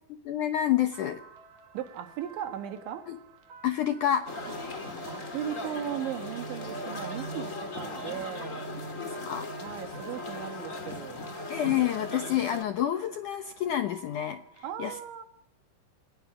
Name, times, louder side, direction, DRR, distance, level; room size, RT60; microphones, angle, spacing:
voice 1, 0.3-1.2 3.1-3.2 3.6-4.3 9.0-9.5 11.5-15.0, left 11 dB, 85° left, 1.7 m, -28 dB
sound 1, 0.9-14.6, right 4 dB, 50° right, 4.0 m, -54 dB
voice 2, 1.7-3.1 4.5-8.6 9.5-11.2 14.6-15.2, right 10 dB, 85° right, 4.1 m, -37 dB
sound 2, 4.2-12.6, left 1 dB, 30° left, 1.6 m, -38 dB
28.5 x 20.0 x 6.1 m
omnidirectional pair, 5.2 m